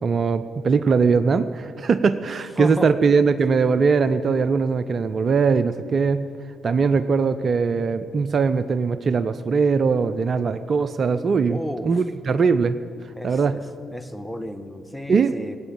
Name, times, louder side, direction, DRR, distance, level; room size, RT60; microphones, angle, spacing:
voice 1, 0.0-6.3 6.6-12.8 13.2-13.6 15.1-15.3, right 5 dB, 50° right, 13 dB, 0.6 m, -21 dB
voice 2, 2.3-2.9 6.8-7.1 11.5-12.0 13.1-13.7 13.9-15.6, left 1 dB, 5° left, 9 dB, 1.3 m, -33 dB
18.5 x 9.0 x 7.2 m, 2.4 s
hypercardioid pair, 45°, 0 cm